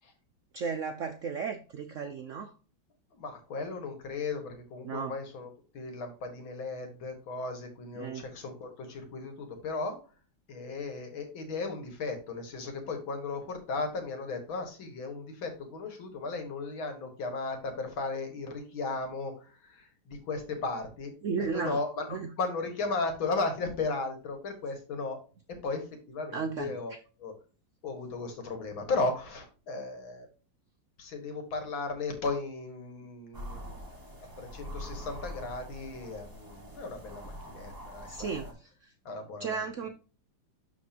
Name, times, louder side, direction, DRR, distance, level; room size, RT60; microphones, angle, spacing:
voice 1, 0.5-2.5 4.8-5.1 8.0-8.2 21.2-21.8 22.1-22.3 26.3-26.7 38.1-38.9 39.4-39.9, right 5 dB, 90° right, 7 dB, 0.6 m, -34 dB
voice 2, 3.1-5.5 5.7-10.0 10.5-21.2 21.5-22.1 22.4-25.2 25.6-26.9 27.2-27.3 27.8-30.3 31.0-33.8 34.4-38.5 39.1-39.7, left 3 dB, 85° left, 5 dB, 2.4 m, -35 dB
sound 1, 33.3-38.5, equal, 10° right, 1.8 m, -44 dB
12.0 x 4.2 x 2.8 m, 0.35 s
omnidirectional pair, 2.1 m